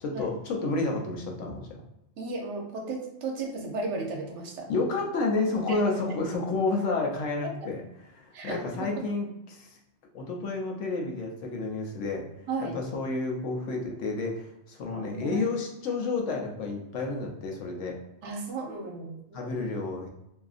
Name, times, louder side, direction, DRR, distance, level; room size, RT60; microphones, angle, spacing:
voice 1, 0.0-1.8 4.7-7.8 8.1-9.8 10.1-12.3 12.6-18.0 19.3-20.1, left 3 dB, 85° left, 1 dB, 1.0 m, -30 dB
voice 2, 2.2-4.7 5.7-5.8 7.4-7.7 8.3-8.9 12.5-12.8 14.9-15.4 18.2-19.4, right 3 dB, 75° right, 1 dB, 0.9 m, -35 dB
2.7 x 2.4 x 2.4 m, 0.85 s
omnidirectional pair, 1.2 m